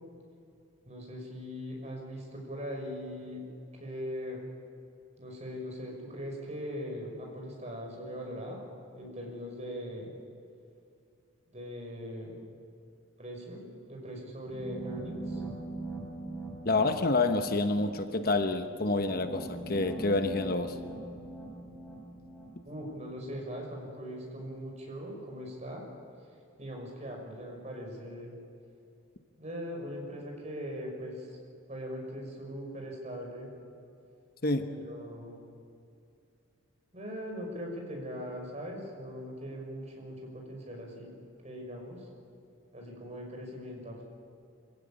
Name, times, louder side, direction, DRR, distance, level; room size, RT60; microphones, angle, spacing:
voice 1, 0.9-3.4 3.8-4.4 5.2-8.6 8.9-10.1 11.5-12.4 13.2-15.4 22.6-25.9 26.6-28.3 29.4-31.4 31.7-33.5 34.7-35.3 36.9-41.1 41.4-42.1 42.7-44.0, equal, 35° right, 0 dB, 5.7 m, -40 dB
sound 1, 14.5-23.4, right 2 dB, 5° left, 4.6 m, -42 dB
voice 2, 16.6-20.8 34.4-34.7, left 2 dB, 45° left, 7 dB, 1.1 m, -28 dB
25.5 x 16.0 x 9.0 m, 2.6 s
head